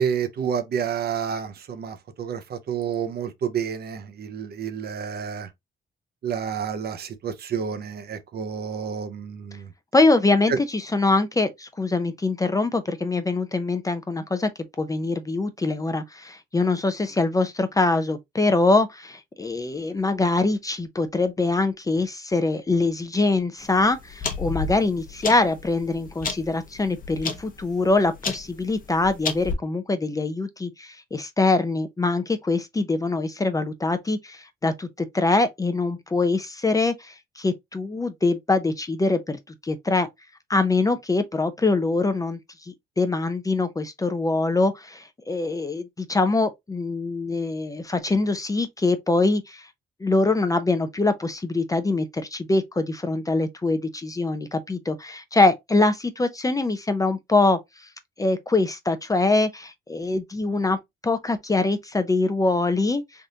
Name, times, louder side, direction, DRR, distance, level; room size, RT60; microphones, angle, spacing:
voice 1, 0.0-5.5 6.2-9.7 10.5-10.6, right 7 dB, 55° right, 0.6 m, -29 dB
voice 2, 9.9-14.5 14.8-40.1 40.5-42.4 42.7-49.7 50.0-57.6 58.2-60.8 61.0-63.0, left 3 dB, 15° left, 0.4 m, -23 dB
sound 1, 23.6-29.5, left 5 dB, 45° left, 0.8 m, -33 dB
3.5 x 2.5 x 2.6 m
cardioid pair, 90°, 20 cm